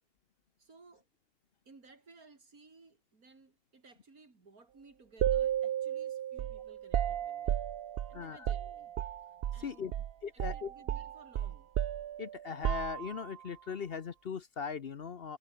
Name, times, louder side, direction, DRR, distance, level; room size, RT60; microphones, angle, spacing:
voice 1, 0.6-1.1 1.7-7.6 8.1-9.0 9.5-10.0 10.3-11.7, right 3 dB, 85° right, 3.9 m, -59 dB
sound 1, 5.2-9.6 9.9-10.1 10.4-13.4, right 10 dB, 60° right, 0.7 m, -34 dB
voice 2, 8.1-8.5 9.6-9.9 10.2-10.7 12.2-15.4, left 6 dB, 50° left, 1.0 m, -39 dB
omnidirectional pair, 1.5 m